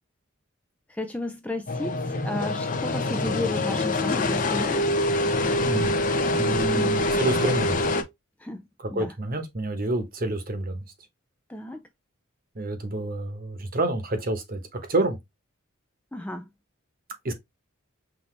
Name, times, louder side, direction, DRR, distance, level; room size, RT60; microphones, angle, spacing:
voice 1, 1.0-5.0 6.7-7.1 8.4-8.6 8.9-9.1 11.5-11.8 16.1-16.5, left 1 dB, 5° left, 0.3 m, -33 dB
sound 1, 1.7-8.0, left 1 dB, 40° left, 0.7 m, -25 dB
voice 2, 5.6-5.9 6.4-7.7 8.9-10.8 12.6-14.6 14.9-15.2 17.2-17.3, right 2 dB, 40° right, 1.0 m, -28 dB
5.8 x 2.7 x 3.2 m
head